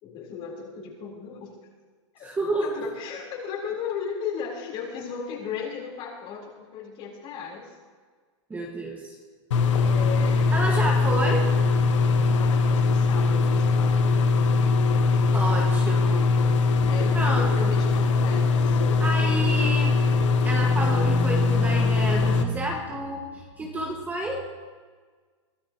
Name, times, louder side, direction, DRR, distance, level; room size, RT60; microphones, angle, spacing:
voice 1, 0.0-1.6 2.1-7.8 9.7-11.3 12.3-14.0 16.9-19.5, left 6 dB, 35° left, -1 dB, 3.9 m, -36 dB
voice 2, 2.2-2.9 8.5-9.1 10.5-11.5 15.3-16.3 17.1-17.8 19.0-20.0 20.4-24.5, right 1 dB, 10° right, -1 dB, 1.6 m, -29 dB
sound 1, 9.5-22.4, left 4 dB, 70° left, 1.4 m, -21 dB
22.5 x 13.0 x 3.0 m, 1.5 s
hypercardioid pair, 135°, 16 cm